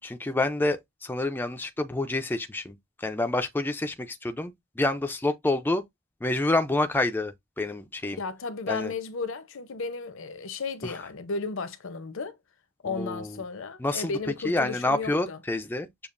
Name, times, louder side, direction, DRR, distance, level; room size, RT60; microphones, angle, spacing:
voice 1, 0.0-5.8 6.2-8.2 8.7-8.9 10.8-11.0 12.8-13.4 13.8-14.1 14.4-15.9, left 2 dB, 10° left, 0.4 m, -28 dB
voice 2, 8.1-12.4 12.8-15.4, left 4 dB, 65° left, 0.7 m, -34 dB
7.0 x 2.4 x 2.5 m
head